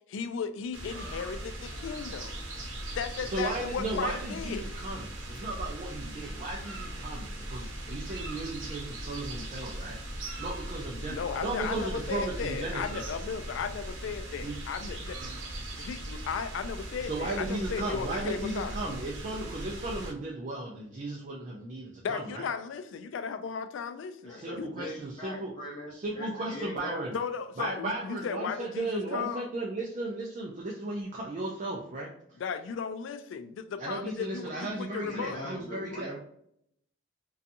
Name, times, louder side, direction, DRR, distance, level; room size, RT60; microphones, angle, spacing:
voice 1, 0.1-2.3 3.0-4.7 11.1-15.1 15.8-18.7 22.0-24.7 27.1-29.5 32.4-35.5, left 6 dB, 70° left, 10 dB, 0.3 m, -35 dB
sound 1, 0.7-20.1, right 1 dB, 80° right, 0.8 m, -39 dB
voice 2, 3.3-10.0 10.4-13.1 14.4-14.6 15.2-15.3 15.7-15.9 17.0-22.5 24.3-25.5 25.9-27.2 27.6-32.1 33.8-36.2, right 2 dB, 40° right, -2 dB, 0.4 m, -35 dB
voice 3, 24.2-27.1 27.9-28.0 34.9-36.2, left 1 dB, 25° left, -3 dB, 0.8 m, -41 dB
2.6 x 2.3 x 2.5 m, 0.72 s
head